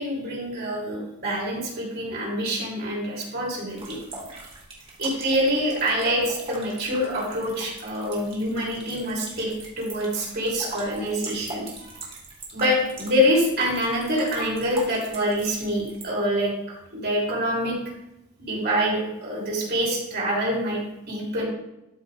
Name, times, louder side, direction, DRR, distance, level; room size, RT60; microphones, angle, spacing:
voice 1, 0.0-4.0 5.0-11.9 12.5-16.5 16.9-17.8 18.4-20.8 21.1-21.5, equal, 45° right, -3 dB, 3.1 m, -26 dB
sound 1, 3.7-16.0, right 3 dB, 25° right, 2.4 m, -42 dB
13.0 x 5.1 x 3.3 m, 0.91 s
head